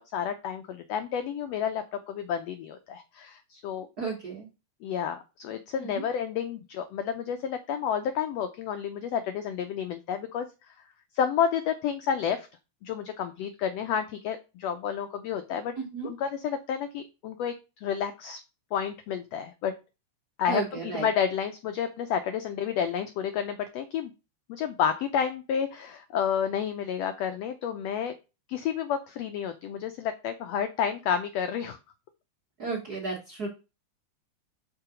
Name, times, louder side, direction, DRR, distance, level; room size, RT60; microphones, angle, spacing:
voice 1, 0.1-3.9 4.8-10.5 11.1-12.5 12.8-15.7 16.0-17.5 17.8-18.4 18.7-19.7 20.4-24.1 24.5-28.1 28.5-31.8, left 8 dB, 90° left, 8 dB, 1.4 m, -30 dB
voice 2, 4.0-4.5 5.8-6.0 15.8-16.1 20.5-21.1 32.6-33.5, right 4 dB, 50° right, -2 dB, 1.2 m, -33 dB
6.1 x 3.8 x 4.9 m, 0.29 s
omnidirectional pair, 3.6 m